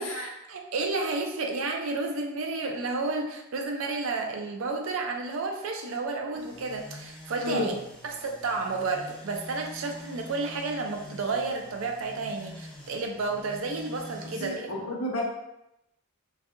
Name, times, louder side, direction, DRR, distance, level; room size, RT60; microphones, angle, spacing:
voice 1, 0.0-7.7 8.0-14.6, right 3 dB, 60° right, 3 dB, 0.4 m, -31 dB
sound 1, 6.3-14.5, left 1 dB, 25° left, 0.5 m, -45 dB
voice 2, 14.2-15.2, left 1 dB, 65° left, -3 dB, 0.6 m, -32 dB
2.7 x 2.3 x 2.4 m, 0.86 s
head